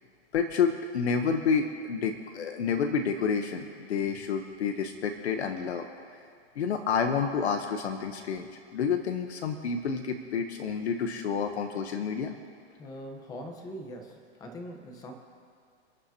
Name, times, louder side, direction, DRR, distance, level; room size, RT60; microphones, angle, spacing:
voice 1, 0.3-5.8 6.5-12.3, left 6 dB, 70° left, 5 dB, 1.2 m, -29 dB
voice 2, 12.8-15.1, equal, 10° left, 4 dB, 1.0 m, -42 dB
29.0 x 10.0 x 2.9 m, 2.2 s
hypercardioid pair, 165°, 34 cm